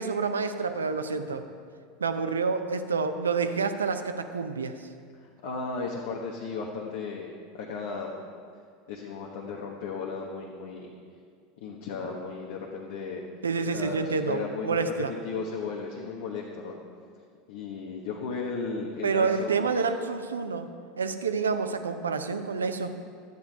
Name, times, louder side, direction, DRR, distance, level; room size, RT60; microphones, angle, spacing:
voice 1, 0.0-1.4 2.0-4.7 13.4-15.1 19.0-20.7 21.0-23.0, right 5 dB, 90° right, 8 dB, 0.6 m, -28 dB
voice 2, 5.2-8.1 8.9-10.9 11.6-13.2 13.7-14.9 15.2-16.8 17.5-19.9, left 4 dB, 70° left, -1 dB, 1.2 m, -35 dB
12.0 x 9.5 x 4.7 m, 2.2 s
hypercardioid pair, 85°, 0 cm